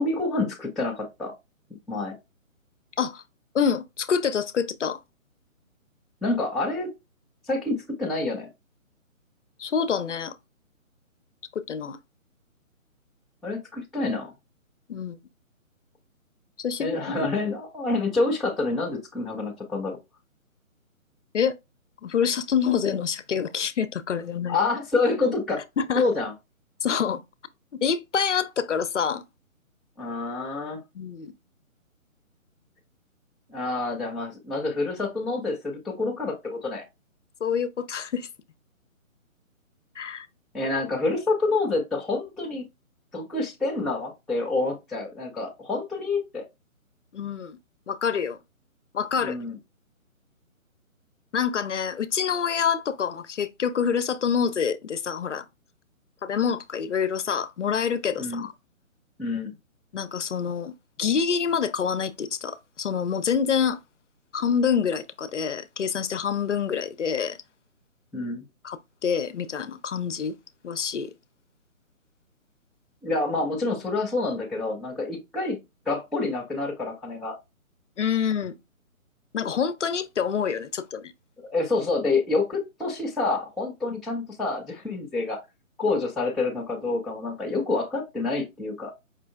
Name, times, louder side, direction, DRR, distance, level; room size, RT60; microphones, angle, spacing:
voice 1, 0.0-1.3 1.9-2.2 6.2-6.9 7.5-8.5 13.4-14.3 16.8-20.0 24.5-25.6 26.0-26.3 30.0-30.8 33.5-36.8 40.5-42.6 43.1-46.4 49.2-49.6 58.2-58.4 59.2-59.5 68.1-68.4 73.0-75.6 75.9-77.4 81.4-85.4 85.8-88.9, left 3 dB, ahead, 0.4 m, -27 dB
voice 2, 3.5-5.0 9.6-10.4 11.7-12.0 14.9-15.1 16.6-17.3 21.3-21.5 22.0-24.6 25.8-26.1 26.8-27.2 27.8-29.2 31.0-31.3 37.4-38.3 40.0-40.3 47.1-47.6 47.9-48.4 48.9-49.4 51.3-55.5 56.2-58.5 59.9-60.7 61.0-63.8 64.3-67.4 68.6-70.3 70.6-71.1 78.0-78.5 79.3-81.1, left 7 dB, 60° left, 0.5 m, -26 dB
5.0 x 3.2 x 2.3 m
hypercardioid pair, 170°, 42 cm